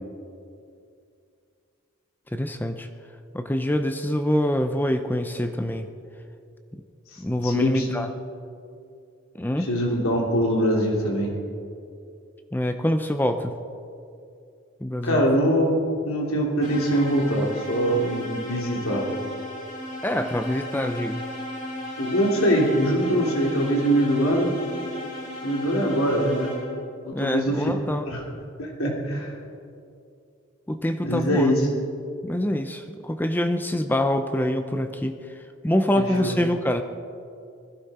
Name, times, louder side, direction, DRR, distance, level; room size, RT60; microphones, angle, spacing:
voice 1, 2.3-2.9 3.3-5.9 6.7-6.8 7.2-8.1 9.4-9.7 12.5-13.6 14.8-15.3 20.0-21.3 27.1-28.0 30.7-31.5 32.2-35.4 35.6-36.8, left 1 dB, 10° left, 7 dB, 0.6 m, -25 dB
voice 2, 7.1-7.9 9.6-11.3 15.0-19.1 22.0-24.5 25.4-26.5 27.0-27.7 28.1-28.2 28.6-29.3 31.0-31.6 36.0-36.4, equal, 90° left, -1 dB, 3.1 m, -23 dB
sound 1, 16.6-27.0, left 1 dB, 40° left, 3.2 m, -35 dB
21.0 x 15.5 x 4.3 m, 2.5 s
head